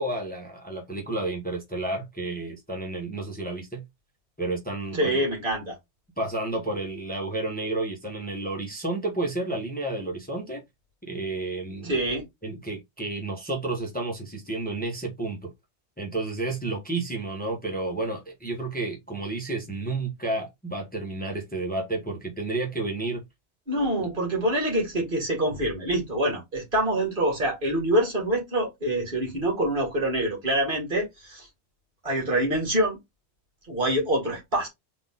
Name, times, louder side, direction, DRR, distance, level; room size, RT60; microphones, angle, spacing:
voice 1, 0.0-3.8 4.4-5.1 6.2-10.6 11.0-11.9 12.4-15.5 16.0-23.2, right 2 dB, 10° left, 1.1 m, -31 dB
voice 2, 4.9-5.8 11.8-12.2 23.7-31.5 32.0-33.0 33.6-34.7, right 1 dB, 50° right, 2.0 m, -25 dB
4.1 x 2.9 x 3.5 m
omnidirectional pair, 1.1 m